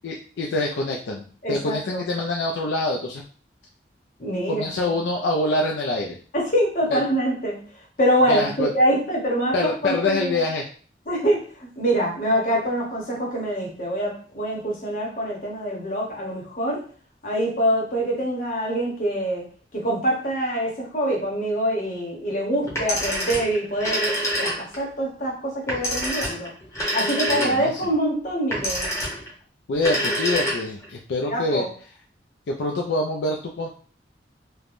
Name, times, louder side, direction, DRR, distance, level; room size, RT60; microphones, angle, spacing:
voice 1, 0.0-1.2 1.5-3.2 4.5-6.2 6.9-7.0 8.3-8.7 9.5-10.7 27.3-27.8 29.7-31.7 32.5-33.7, left 2 dB, 75° left, 0 dB, 0.4 m, -25 dB
voice 2, 1.4-2.0 4.2-4.7 6.3-7.6 8.0-10.4 11.1-16.8 17.2-19.4 19.7-24.5 24.8-26.5 26.9-28.9 31.3-31.7, equal, 45° left, -2 dB, 0.9 m, -25 dB
Telephone, 22.7-24.9 25.7-27.8 28.5-29.3 29.7-30.9, equal, 15° left, 0.8 m, -26 dB
3.2 x 2.1 x 2.5 m, 0.43 s
head